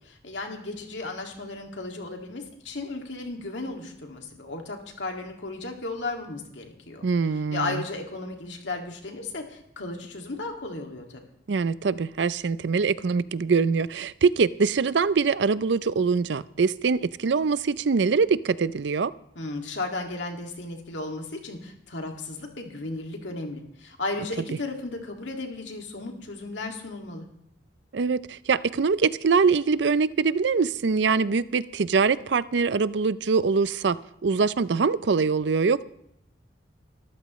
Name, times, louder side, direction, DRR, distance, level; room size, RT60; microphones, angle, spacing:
voice 1, 0.1-7.0 7.5-11.2 19.4-27.3, left 2 dB, 80° left, 2 dB, 2.2 m, -35 dB
voice 2, 7.0-7.8 11.5-19.1 27.9-35.8, right 5 dB, 70° right, 17 dB, 0.5 m, -23 dB
23.0 x 14.0 x 3.1 m, 0.76 s
head